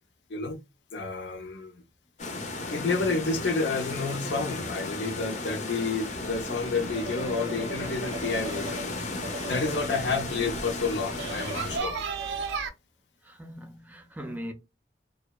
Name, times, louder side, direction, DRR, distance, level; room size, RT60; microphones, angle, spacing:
voice 1, 0.9-1.8 2.7-8.8 9.4-12.0, left 4 dB, 85° left, 0.6 m, -30 dB
sound 1, 2.2-11.8, left 2 dB, 40° left, 0.6 m, -35 dB
sound 2, 6.3-12.7, right 4 dB, 80° right, 0.4 m, -37 dB
voice 2, 13.2-14.5, equal, 10° right, 0.3 m, -40 dB
2.7 x 2.1 x 2.2 m
head